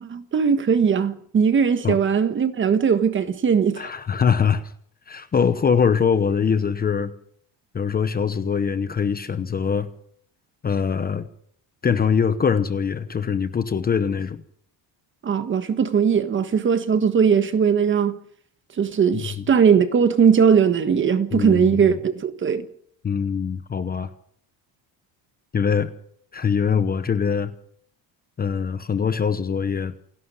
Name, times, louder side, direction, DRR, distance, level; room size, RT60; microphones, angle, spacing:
voice 1, 0.0-3.9 15.2-18.2 18.8-22.7, right 7 dB, 25° right, 1.5 m, -19 dB
voice 2, 3.8-4.6 5.1-7.1 7.7-9.9 10.6-11.3 11.8-14.4 19.1-19.5 21.3-22.0 23.0-24.1 25.5-25.9 26.3-27.5 28.4-30.0, left 6 dB, 20° left, 0.9 m, -23 dB
28.5 x 11.5 x 9.6 m
cardioid pair, 175°, 43 cm